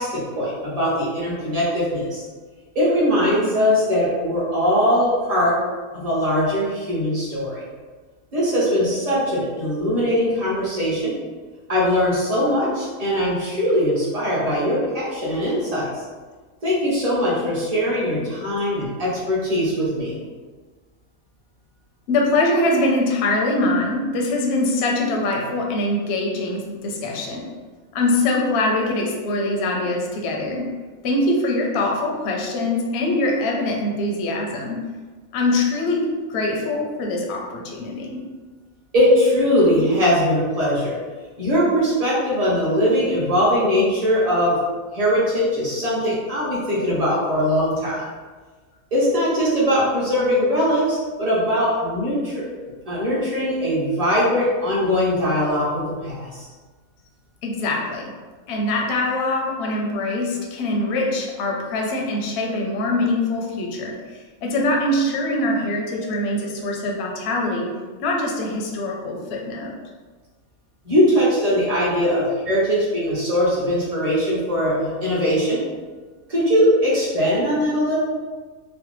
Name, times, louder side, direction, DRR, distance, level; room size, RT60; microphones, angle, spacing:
voice 1, 0.0-2.2 2.7-5.6 5.9-7.6 8.3-11.1 11.7-15.9 16.6-20.2 38.9-40.9 41.4-44.6 44.9-48.0 48.9-52.3 52.9-56.5 70.8-75.6 76.3-78.0, equal, 30° right, -8 dB, 0.9 m, -21 dB
voice 2, 22.1-27.5 27.9-30.7 31.0-34.8 35.3-38.2 57.4-58.1 58.5-67.7 68.0-69.7 72.1-72.2, left 2 dB, 65° left, -1 dB, 0.7 m, -23 dB
3.2 x 2.1 x 3.0 m, 1.4 s
omnidirectional pair, 1.4 m